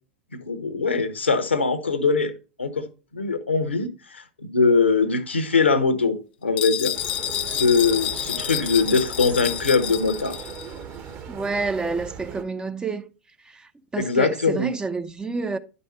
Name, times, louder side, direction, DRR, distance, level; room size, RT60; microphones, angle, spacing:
voice 1, 0.5-2.3 2.6-2.9 3.1-6.9 7.4-10.4 14.0-14.7, left 4 dB, 85° left, 1.1 m, -22 dB
sound 1, 6.6-10.7, left 13 dB, 60° left, 0.5 m, -29 dB
sound 2, 6.9-12.4, right 7 dB, 35° right, 1.3 m, -38 dB
voice 2, 11.3-13.1 13.4-15.6, right 3 dB, 15° right, 0.6 m, -29 dB
10.5 x 5.4 x 4.2 m
figure-of-eight pair, 90°, 6 cm